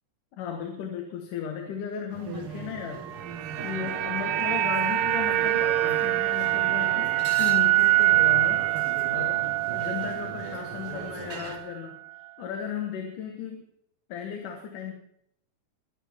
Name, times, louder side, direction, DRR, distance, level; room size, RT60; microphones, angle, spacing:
voice 1, 0.4-3.1 3.6-8.7 9.1-12.0 12.4-13.7 14.1-14.9, left 8 dB, 75° left, 4 dB, 2.9 m, -35 dB
sound 1, 2.1-11.6, right 5 dB, 50° right, 2.0 m, -40 dB
sound 2, 3.0-11.3 11.5-11.7, right 15 dB, 80° right, 2.3 m, -25 dB
22.5 x 13.0 x 3.6 m, 0.71 s
omnidirectional pair, 3.8 m